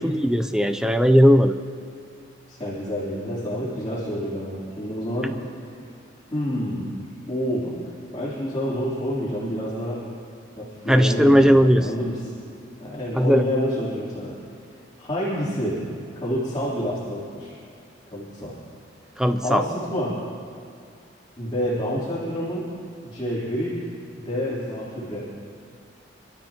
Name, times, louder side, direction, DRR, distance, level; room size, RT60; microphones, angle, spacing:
voice 1, 0.0-1.6 10.9-11.9 13.1-13.5 19.2-19.6, equal, 5° right, 8 dB, 0.5 m, -17 dB
voice 2, 2.5-5.4 6.3-6.9 7.3-7.7 8.1-10.0 10.6-12.3 12.8-14.4 15.0-15.8 16.1-17.5 18.1-18.5 19.4-20.1 21.4-22.6 23.0-23.7 24.2-25.3, equal, 25° left, -11 dB, 3.4 m, -28 dB
25.5 x 13.0 x 3.0 m, 2.4 s
head